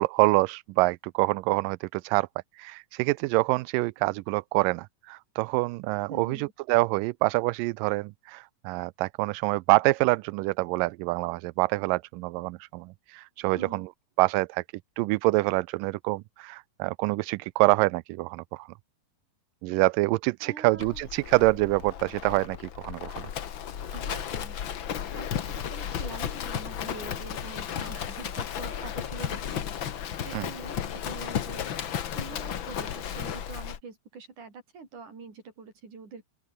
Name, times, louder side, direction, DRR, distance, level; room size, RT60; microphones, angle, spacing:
voice 1, 0.0-2.3 2.6-13.9 14.2-14.6 15.0-18.7 19.6-23.3 30.3-30.5, right 23 dB, 85° right, 2.2 m, -26 dB
voice 2, 6.1-6.5 13.5-13.9 20.4-21.0 23.9-24.6 25.1-29.6 30.2-31.7 32.1-36.2, right 5 dB, 60° right, 6.6 m, -44 dB
Livestock farm animals working animals, 20.8-33.8, left 9 dB, 55° left, 1.4 m, -34 dB
open air
omnidirectional pair, 3.9 m